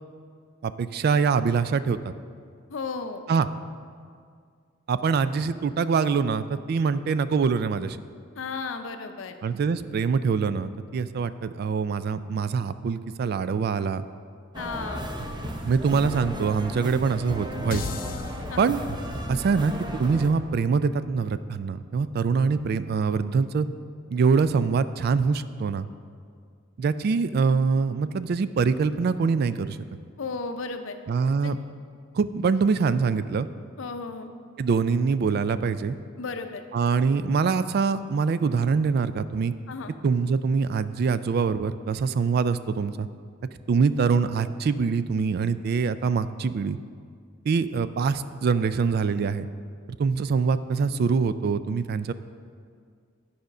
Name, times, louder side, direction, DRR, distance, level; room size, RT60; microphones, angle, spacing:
voice 1, 0.6-2.1 3.3-3.5 4.9-8.0 9.4-14.0 15.6-17.8 18.6-18.8 19.3-23.7 24.1-25.9 26.8-29.8 31.1-31.6 32.1-33.5 34.6-36.0 36.7-39.5 40.0-43.1 43.7-46.8 47.5-49.5 50.0-52.1, right 5 dB, 50° right, 14 dB, 0.3 m, -24 dB
voice 2, 2.7-3.2 8.3-9.4 14.5-15.0 18.5-18.8 30.2-31.0 31.4-31.6 33.8-34.3 36.2-36.6 39.7-40.0, left 4 dB, 80° left, 8 dB, 0.6 m, -34 dB
sound 1, 14.5-20.3, right 1 dB, 20° right, 0.7 m, -35 dB
sound 2, 17.7-22.1, left 5 dB, 45° left, 0.3 m, -39 dB
10.5 x 5.0 x 5.3 m, 2.1 s
head